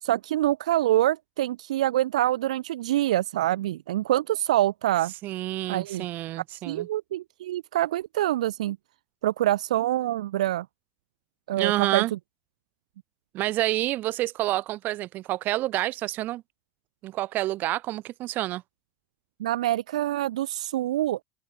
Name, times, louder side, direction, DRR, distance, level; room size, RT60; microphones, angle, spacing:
voice 1, 0.0-5.1 5.7-6.1 6.7-8.8 9.2-10.7 11.5-12.2 19.4-21.2, right 14 dB, 80° right, 0.9 m, -25 dB
voice 2, 5.2-6.9 11.6-12.1 13.3-16.4 17.0-18.6, right 16 dB, 55° right, 2.7 m, -28 dB
open air
hypercardioid pair, 75°, 4 cm